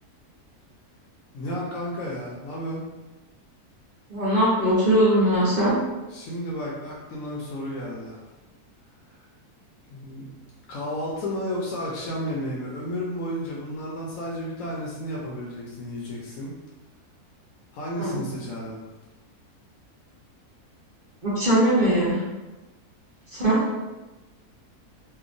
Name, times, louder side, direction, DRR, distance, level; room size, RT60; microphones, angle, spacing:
voice 1, 1.3-2.8 6.1-8.2 9.9-10.3 10.7-16.5 17.7-18.8, equal, 70° left, -4 dB, 0.9 m, -32 dB
voice 2, 4.1-5.7 18.0-18.2 21.2-22.2 23.3-23.6, right 1 dB, 55° right, -8 dB, 0.5 m, -20 dB
2.8 x 2.2 x 2.5 m, 1.1 s
omnidirectional pair, 1.7 m